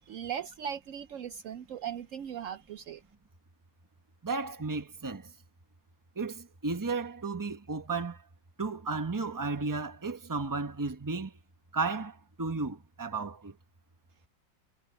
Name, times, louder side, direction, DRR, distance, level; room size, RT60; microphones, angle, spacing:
voice 1, 0.0-3.0, right 9 dB, 90° right, 0.6 m, -38 dB
voice 2, 4.2-5.3 6.2-8.2 8.6-11.3 11.7-13.5, right 3 dB, 15° right, 0.8 m, -34 dB
omnidirectional pair, 2.1 m